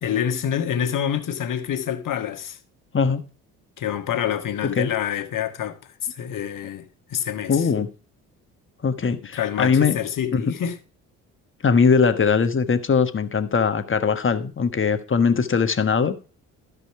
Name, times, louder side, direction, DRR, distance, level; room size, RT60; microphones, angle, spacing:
voice 1, 0.0-2.6 3.8-5.8 6.1-7.7 9.3-10.8, left 9 dB, 55° left, 1.6 m, -27 dB
voice 2, 7.5-7.9 8.8-10.0 10.3-10.6 11.6-16.1, left 5 dB, 30° left, 1.4 m, -20 dB
13.0 x 5.4 x 4.8 m
hypercardioid pair, 60°, 39 cm